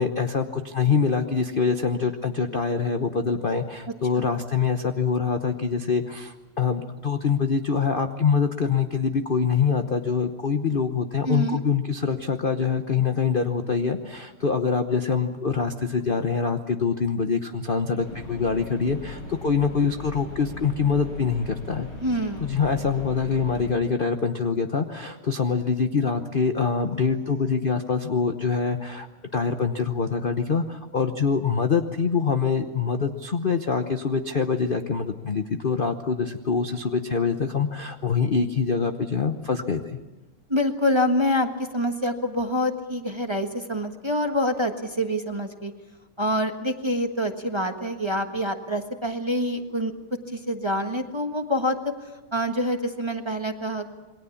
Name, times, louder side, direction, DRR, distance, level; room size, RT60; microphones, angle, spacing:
voice 1, 0.0-21.9 22.4-29.1 29.3-40.0, left 5 dB, 45° left, 7 dB, 0.7 m, -25 dB
voice 2, 11.2-11.6 22.0-22.5 40.5-45.7 46.2-49.9 50.3-51.9 52.3-53.9, left 1 dB, 15° right, 5 dB, 1.2 m, -26 dB
sound 1, 18.0-23.7, left 2 dB, 85° left, 7.4 m, -39 dB
28.0 x 22.0 x 7.2 m, 1.2 s
omnidirectional pair, 2.4 m